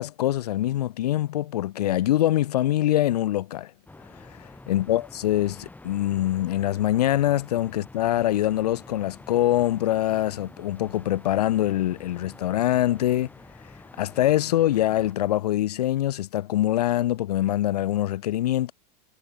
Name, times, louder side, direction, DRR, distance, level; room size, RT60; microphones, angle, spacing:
voice 1, 0.0-3.7 4.7-13.3 14.0-18.7, left 13 dB, 80° left, 2.6 m, -24 dB
sound 1, 3.9-15.1, left 2 dB, 10° left, 7.6 m, -47 dB
hypercardioid pair, 110°, 20 cm